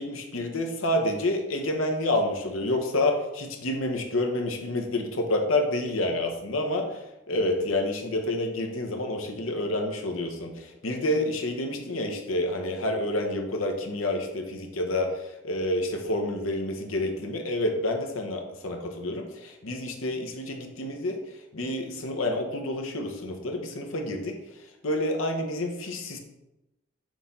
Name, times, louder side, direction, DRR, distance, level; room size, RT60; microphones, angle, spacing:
voice 1, 0.0-21.2 21.5-24.4 24.8-26.2, left 1 dB, 90° left, 3 dB, 1.0 m, -28 dB
6.5 x 4.1 x 3.8 m, 0.93 s
head